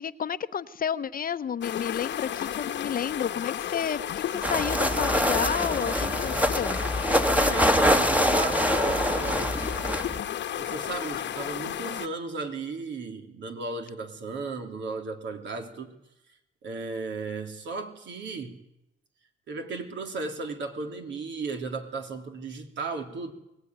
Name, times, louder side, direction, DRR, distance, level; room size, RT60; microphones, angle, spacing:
voice 1, 0.0-6.8, left 8 dB, 45° left, 1.0 m, -31 dB
sound 1, 1.6-12.1, left 10 dB, 65° left, 1.3 m, -33 dB
sound 2, 4.4-10.2, equal, 5° right, 1.6 m, -25 dB
voice 2, 7.4-9.6 10.6-16.0 16.6-18.6 19.5-23.3, right 3 dB, 65° right, 3.2 m, -35 dB
23.0 x 18.5 x 9.5 m
cardioid pair, 90°, 20 cm